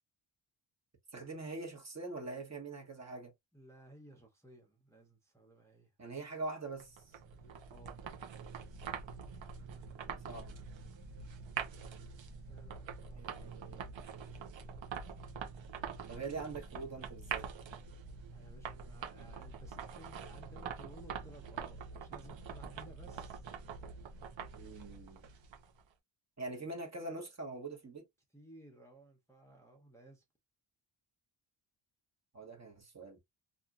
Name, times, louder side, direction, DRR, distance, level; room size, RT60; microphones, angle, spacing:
voice 1, 1.1-3.3 6.0-7.0 10.0-10.7 13.1-14.0 16.1-17.5 24.5-25.2 26.4-28.0 32.3-33.2, right 3 dB, 35° right, 1.2 m, -43 dB
voice 2, 3.5-5.9 7.4-8.0 12.5-13.3 18.3-23.4 28.3-30.2, right 1 dB, 5° left, 0.8 m, -57 dB
sound 1, 6.8-25.8, right 6 dB, 65° right, 0.8 m, -45 dB
2.8 x 2.6 x 2.4 m
cardioid pair, 85°, 48 cm